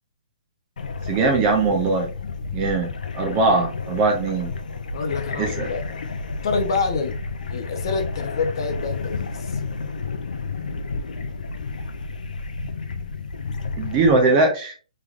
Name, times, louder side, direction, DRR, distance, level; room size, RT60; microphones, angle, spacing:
sound 1, 0.8-14.2, left 4 dB, 90° left, 0.6 m, -31 dB
voice 1, 1.1-2.1 2.5-4.5 5.4-5.7 13.8-14.7, right 3 dB, 15° right, 0.6 m, -20 dB
voice 2, 4.9-5.8 6.3-7.2 7.5-9.6, left 4 dB, 35° left, 0.6 m, -27 dB
3.6 x 3.2 x 2.4 m
hypercardioid pair, 180°, 4 cm